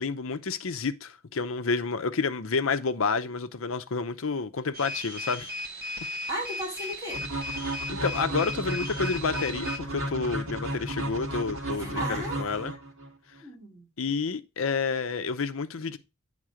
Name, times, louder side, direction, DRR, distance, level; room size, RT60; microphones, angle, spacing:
voice 1, 0.0-5.5 7.6-12.7 14.0-16.0, left 4 dB, 70° left, 0.7 m, -30 dB
sound 1, 4.7-9.8, left 1 dB, 45° right, 0.9 m, -36 dB
voice 2, 6.3-7.3 11.8-12.6 13.4-13.9, right 1 dB, 15° right, 3.1 m, -35 dB
sound 2, 7.1-13.1, right 1 dB, 90° right, 2.0 m, -33 dB
8.8 x 3.7 x 4.9 m
head